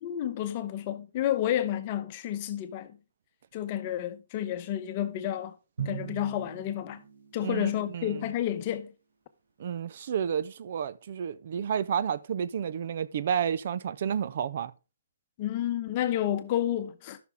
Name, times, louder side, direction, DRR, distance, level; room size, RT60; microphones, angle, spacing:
voice 1, 0.0-3.0 3.5-5.5 5.8-7.0 7.3-8.9 15.4-17.2, left 11 dB, 30° left, 0.9 m, -30 dB
Drum, 5.8-8.0, right 8 dB, 75° right, 2.6 m, -40 dB
voice 2, 7.4-8.2 9.6-14.7, right 8 dB, 45° right, 0.5 m, -31 dB
13.0 x 6.1 x 3.5 m
hypercardioid pair, 155°, 0 cm